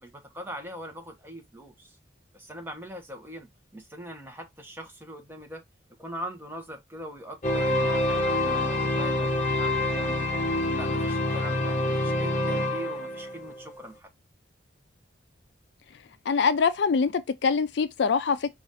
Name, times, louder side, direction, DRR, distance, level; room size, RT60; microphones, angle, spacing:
voice 1, 0.0-2.0 2.3-3.5 3.7-5.6 6.0-10.3 10.7-14.1, equal, 10° right, 0.9 m, -41 dB
sound 1, 7.4-13.8, left 1 dB, 40° left, 0.7 m, -26 dB
voice 2, 16.3-18.5, left 5 dB, 65° left, 0.4 m, -24 dB
5.0 x 2.5 x 4.0 m
head